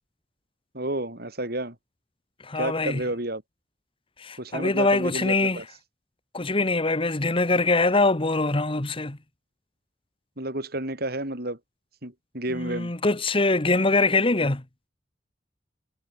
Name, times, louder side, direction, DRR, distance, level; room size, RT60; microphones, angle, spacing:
voice 1, 0.7-1.8 2.5-3.4 4.4-5.6 10.4-11.6 12.0-12.9, right 1 dB, 55° right, 7.8 m, -31 dB
voice 2, 2.4-3.0 4.2-5.6 6.3-9.2 12.5-14.6, left 2 dB, 30° left, 1.4 m, -23 dB
head